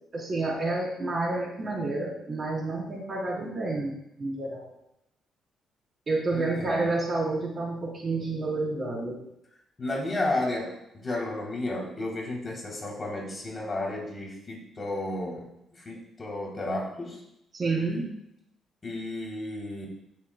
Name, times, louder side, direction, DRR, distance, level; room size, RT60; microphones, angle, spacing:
voice 1, 0.1-4.7 6.1-9.2 17.5-18.1, right 2 dB, 40° right, -3 dB, 3.8 m, -29 dB
voice 2, 6.3-6.9 9.8-15.5 15.7-17.2 18.8-19.9, left 2 dB, 30° left, -2 dB, 3.2 m, -32 dB
15.5 x 7.4 x 2.3 m, 0.82 s
cardioid pair, 90°, 0 cm